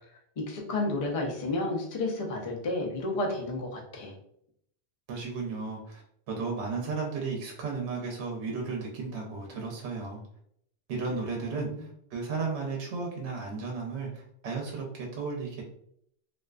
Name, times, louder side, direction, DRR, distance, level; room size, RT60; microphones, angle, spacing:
voice 1, 0.4-4.1 11.1-11.9, left 2 dB, 45° left, 1 dB, 0.5 m, -32 dB
voice 2, 5.1-6.0 6.3-10.2 10.9-15.6, right 4 dB, 85° right, -1 dB, 0.9 m, -34 dB
2.4 x 2.3 x 2.2 m, 0.71 s
omnidirectional pair, 1.1 m